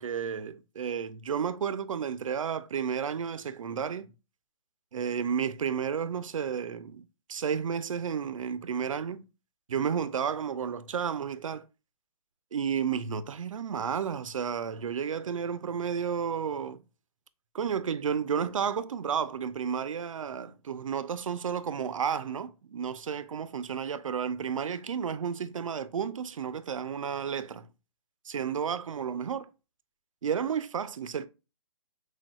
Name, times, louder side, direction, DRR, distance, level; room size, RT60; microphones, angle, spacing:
voice 1, 0.0-4.1 4.9-9.3 9.7-11.6 12.5-16.8 17.5-27.7 28.2-29.5 30.2-31.3, right 7 dB, 80° right, 0.4 m, -32 dB
6.2 x 2.2 x 2.3 m
hypercardioid pair, 150°, 17 cm